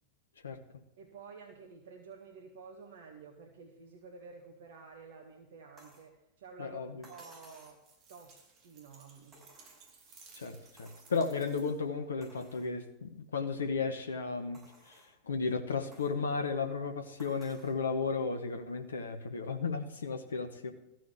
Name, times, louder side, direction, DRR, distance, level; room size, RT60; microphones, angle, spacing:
voice 1, 1.0-6.8 7.1-7.8 8.1-9.5, right 5 dB, 55° right, 2 dB, 1.5 m, -51 dB
sound 1, 5.8-6.1 7.0-7.8 9.3-10.1 10.8-11.1 11.6-11.7 12.2-12.7 13.3-13.4 14.5-15.2 15.9-16.2 17.2-17.8 19.0-19.1, right 1 dB, 10° right, 6.2 m, -58 dB
voice 2, 6.6-7.0 10.4-15.0 15.3-20.7, left 4 dB, 70° left, 7 dB, 1.1 m, -34 dB
sound 2, 7.8-12.0, right 4 dB, 30° right, 3.5 m, -59 dB
14.0 x 6.3 x 8.1 m, 0.88 s
figure-of-eight pair, 90°, 0 cm